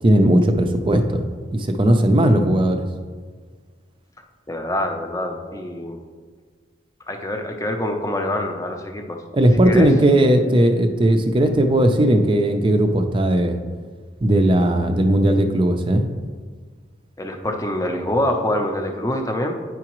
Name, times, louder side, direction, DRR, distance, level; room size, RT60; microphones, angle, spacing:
voice 1, 0.0-2.9 9.3-13.6 14.2-16.0, right 1 dB, 25° right, 6 dB, 0.5 m, -17 dB
voice 2, 4.5-6.0 7.1-9.2 9.6-9.9 17.2-19.6, left 1 dB, 15° left, 3 dB, 0.6 m, -25 dB
9.3 x 4.8 x 3.0 m, 1.5 s
head